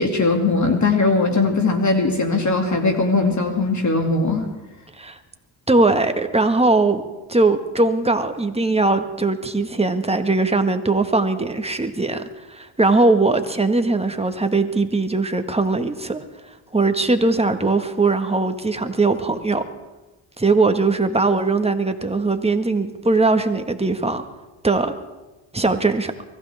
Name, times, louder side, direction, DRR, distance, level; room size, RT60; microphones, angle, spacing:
voice 1, 0.0-4.5, left 3 dB, 35° left, 3 dB, 2.6 m, -19 dB
voice 2, 5.7-7.0 7.3-12.2 12.5-16.2 16.7-19.6 20.4-24.2 24.6-24.9 25.5-26.1, right 3 dB, 10° right, 7 dB, 1.7 m, -20 dB
24.0 x 15.5 x 3.6 m, 1.1 s
supercardioid pair, 60°, 49 cm